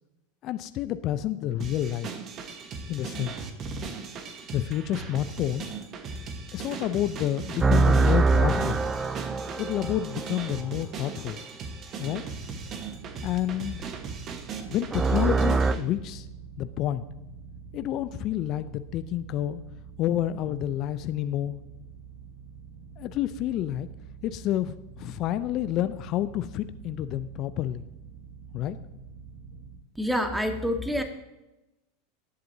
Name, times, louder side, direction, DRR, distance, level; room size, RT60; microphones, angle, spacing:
voice 1, 0.4-2.1 2.9-3.3 4.5-5.7 6.5-8.8 9.6-11.4 12.0-12.2 13.2-13.8 14.7-16.3 16.6-17.0 17.7-19.6 20.0-21.6 23.0-23.9 24.2-27.8 28.5-28.8, left 12 dB, 45° left, 12 dB, 0.5 m, -29 dB
sound 1, 1.6-15.8, right 5 dB, 40° right, 1.2 m, -38 dB
sound 2, 7.6-10.7 14.9-15.7, right 3 dB, 20° right, 0.5 m, -23 dB
sound 3, 12.0-29.8, right 6 dB, 65° right, 1.3 m, -46 dB
voice 2, 29.9-31.0, equal, 5° right, 5 dB, 1.5 m, -27 dB
19.5 x 7.7 x 2.7 m, 0.99 s
hypercardioid pair, 90°, 0 cm